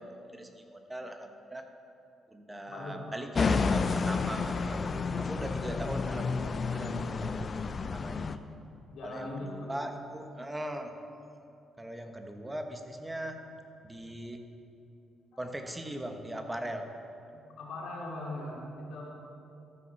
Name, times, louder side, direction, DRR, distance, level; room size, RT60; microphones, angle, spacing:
voice 1, 0.0-1.6 2.3-7.4 7.8-8.2 9.0-10.9 11.8-13.4 13.8-14.4 15.4-16.9, right 1 dB, 10° right, 5 dB, 1.1 m, -40 dB
voice 2, 2.7-3.2 8.9-9.8 15.3-15.5 17.3-19.1, left 1 dB, 75° left, -4 dB, 2.8 m, -40 dB
sound 1, 3.4-8.4, left 4 dB, 40° left, 0.5 m, -30 dB
14.0 x 5.9 x 5.9 m, 2.7 s
cardioid pair, 90°, 0 cm